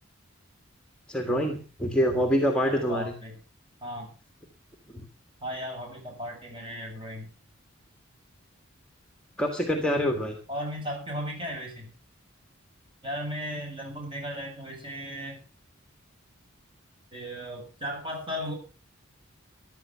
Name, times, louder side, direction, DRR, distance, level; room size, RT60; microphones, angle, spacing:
voice 1, 1.1-3.2 4.9-5.0 9.4-10.4, equal, 5° left, 4 dB, 1.7 m, -26 dB
voice 2, 2.6-3.3 3.8-4.1 5.4-7.3 10.5-11.9 13.0-15.4 17.1-18.6, equal, 25° right, 1 dB, 7.5 m, -36 dB
15.0 x 12.0 x 5.7 m, 0.34 s
head